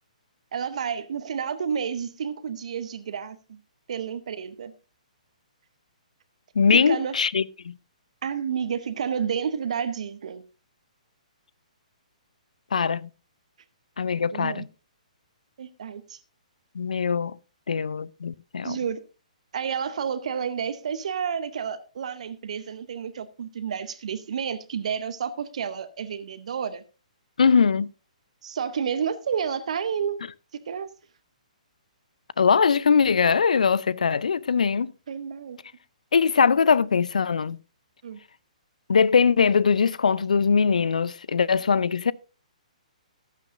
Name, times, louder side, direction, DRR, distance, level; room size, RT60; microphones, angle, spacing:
voice 1, 0.5-3.6 3.9-4.7 6.7-7.2 8.2-10.4 14.3-14.6 15.6-16.2 18.6-19.0 19.5-26.8 28.4-30.2 30.7-30.9 35.1-35.6 38.0-38.2, right 7 dB, 55° right, 0.8 m, -30 dB
voice 2, 6.6-7.7 12.7-13.1 14.0-14.7 16.7-17.4 17.7-18.8 27.4-27.9 32.4-34.9 36.1-37.6 38.9-42.1, left 6 dB, 70° left, 0.5 m, -21 dB
14.5 x 11.0 x 2.5 m
figure-of-eight pair, 125°, 4 cm